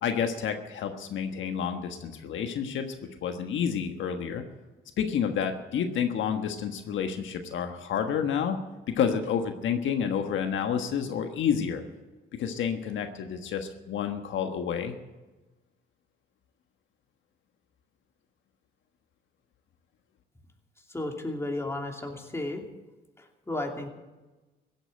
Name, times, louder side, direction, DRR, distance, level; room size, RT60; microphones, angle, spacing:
voice 1, 0.0-2.9 3.2-4.4 5.0-8.6 8.9-11.8 12.4-14.9, left 7 dB, 75° left, 6 dB, 1.4 m, -29 dB
voice 2, 20.9-22.6 23.2-23.9, left 2 dB, 15° left, 2 dB, 2.7 m, -33 dB
16.0 x 8.9 x 9.0 m, 1.1 s
cardioid pair, 90°, 20 cm